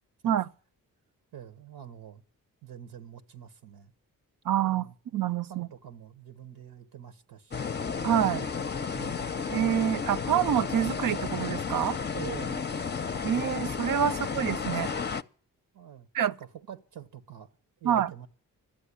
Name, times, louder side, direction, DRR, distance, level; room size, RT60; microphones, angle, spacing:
voice 1, 1.3-2.2 2.6-3.9 4.6-4.9 5.5-7.6 8.0-8.1 8.9-9.3 12.1-12.7 14.1-14.2 15.7-17.5 17.8-18.3, right 9 dB, 90° right, 1.2 m, -46 dB
voice 2, 4.5-4.9 5.1-5.7 8.0-8.5 9.5-12.0 13.2-14.9 16.1-16.3 17.8-18.1, right 10 dB, 60° right, 0.7 m, -27 dB
sound 1, 7.5-15.2, left 5 dB, 30° left, 0.6 m, -32 dB
12.5 x 7.9 x 10.0 m
cardioid pair, 60°, 36 cm